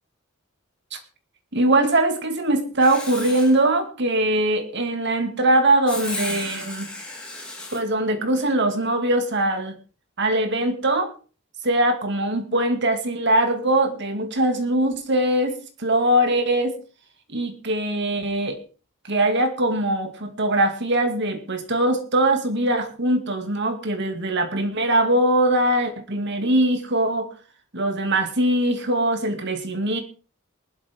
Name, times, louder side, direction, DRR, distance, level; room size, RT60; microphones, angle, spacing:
voice 1, 1.5-6.9 7.7-9.8 10.2-11.1 11.6-16.7 17.3-18.6 19.0-27.3 27.7-30.0, right 1 dB, 60° right, 6 dB, 2.4 m, -22 dB
Writing, 2.8-3.6 5.9-7.8, left 2 dB, 5° left, 4.1 m, -33 dB
19.5 x 12.0 x 3.7 m, 0.35 s
head